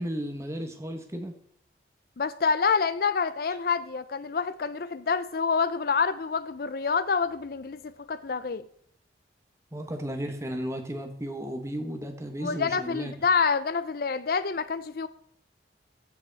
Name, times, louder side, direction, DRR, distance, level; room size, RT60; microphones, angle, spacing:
voice 1, 0.0-1.3 9.7-13.1, equal, 15° right, 5 dB, 1.3 m, -34 dB
voice 2, 2.2-8.6 12.4-15.1, left 5 dB, 55° left, 14 dB, 0.5 m, -27 dB
14.5 x 5.8 x 4.1 m, 0.65 s
head